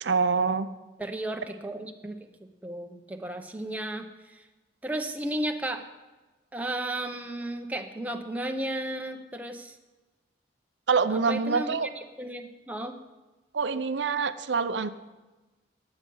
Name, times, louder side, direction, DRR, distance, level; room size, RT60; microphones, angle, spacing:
voice 1, 0.0-0.7 10.9-11.9 13.5-14.9, right 5 dB, 80° right, 11 dB, 0.6 m, -25 dB
voice 2, 1.0-2.2 2.6-4.4 4.8-5.8 6.5-9.8 11.1-11.8 12.2-13.0, right 1 dB, 10° right, 4 dB, 0.8 m, -34 dB
15.5 x 9.7 x 5.5 m, 1.2 s
head